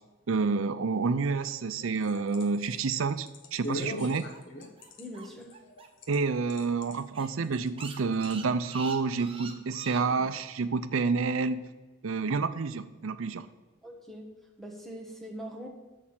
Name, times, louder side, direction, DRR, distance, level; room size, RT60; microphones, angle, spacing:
voice 1, 0.3-4.3 6.1-11.7 12.0-13.5, right 4 dB, 85° right, 13 dB, 0.5 m, -29 dB
sound 1, 1.8-6.2 6.5-7.0 7.5-7.9 8.2-8.4, equal, 65° left, 1.0 m, -39 dB
sound 2, 3.7-6.2 6.4-6.5 6.8-6.9 7.1-10.5, right 5 dB, 25° right, 0.8 m, -45 dB
voice 2, 5.0-5.5 10.0-10.3 13.8-14.3 14.6-15.7, equal, ahead, 0 dB, 1.3 m, -42 dB
7.1 x 6.6 x 7.4 m, 1.2 s
head